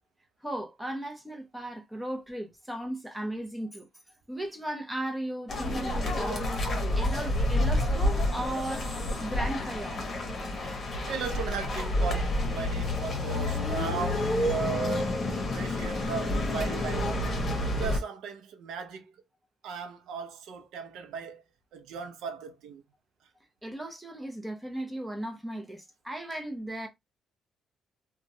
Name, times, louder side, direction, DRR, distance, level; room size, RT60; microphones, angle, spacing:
voice 1, 0.4-3.9 4.3-6.5 7.0-8.9 9.2-10.1 23.6-26.9, right 1 dB, 5° right, 0.9 m, -36 dB
sound 1, 5.5-18.0, left 1 dB, 45° left, 1.1 m, -29 dB
voice 2, 11.1-15.1 15.5-17.1 17.6-19.1 19.6-21.4 21.7-22.8, right 6 dB, 85° right, 0.6 m, -37 dB
2.8 x 2.3 x 2.7 m
cardioid pair, 90°, 0 cm